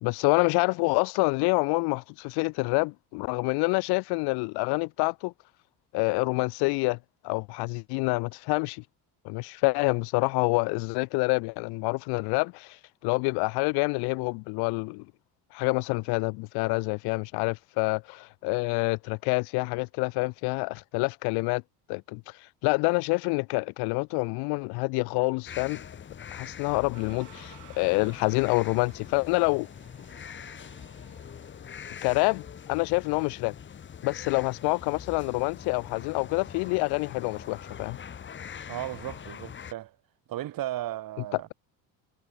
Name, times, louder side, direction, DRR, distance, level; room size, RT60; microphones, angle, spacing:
voice 1, 0.0-5.3 5.9-7.0 7.2-8.8 9.2-12.8 13.0-15.0 15.5-21.6 21.9-22.2 22.6-25.8 26.3-29.7 32.0-32.4 32.7-33.5 34.0-38.0, left 29 dB, 75° left, 0.5 m, -27 dB
sound 1, 25.5-39.7, left 8 dB, 30° left, 1.3 m, -43 dB
sound 2, 26.9-32.0, right 22 dB, 75° right, 3.8 m, -55 dB
voice 2, 38.7-40.0 40.3-41.5, right 14 dB, 60° right, 4.9 m, -35 dB
cardioid pair, 115°, 39 cm